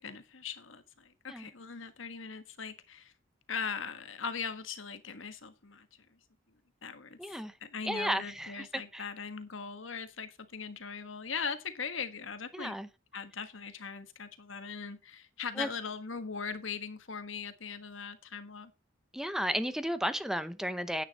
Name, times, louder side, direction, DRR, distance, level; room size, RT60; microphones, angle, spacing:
voice 1, 0.0-3.1 3.5-5.9 6.8-12.8 13.1-18.7, left 5 dB, 80° left, 1.5 m, -40 dB
voice 2, 7.2-7.5 7.8-9.1 12.5-12.9 15.6-15.7 19.1-21.0, equal, ahead, 0.7 m, -33 dB
9.9 x 8.9 x 4.1 m
head